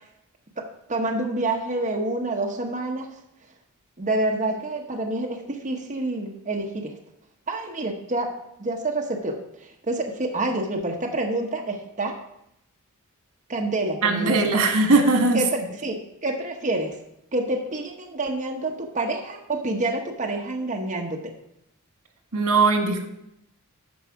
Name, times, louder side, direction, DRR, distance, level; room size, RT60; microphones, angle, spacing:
voice 1, 0.9-3.1 4.0-6.9 7.5-8.3 8.6-12.2 13.5-14.3 15.3-17.0 17.3-21.3, right 2 dB, 35° right, 1 dB, 1.0 m, -27 dB
voice 2, 14.0-15.7 22.3-23.1, right 3 dB, 90° right, 4 dB, 1.5 m, -20 dB
12.5 x 4.8 x 4.7 m, 0.79 s
head